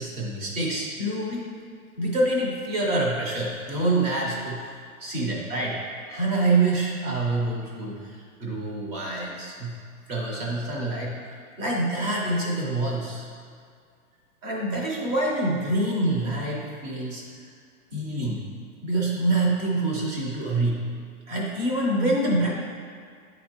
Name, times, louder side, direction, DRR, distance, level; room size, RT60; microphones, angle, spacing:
voice 1, 0.0-1.5 2.0-4.7 5.0-9.8 10.1-11.2 11.6-13.3 14.4-17.2 17.9-18.4 18.8-20.8 21.3-22.5, right 2 dB, 15° right, -2 dB, 0.6 m, -26 dB
8.6 x 4.1 x 3.0 m, 2.1 s
hypercardioid pair, 150°, 45 cm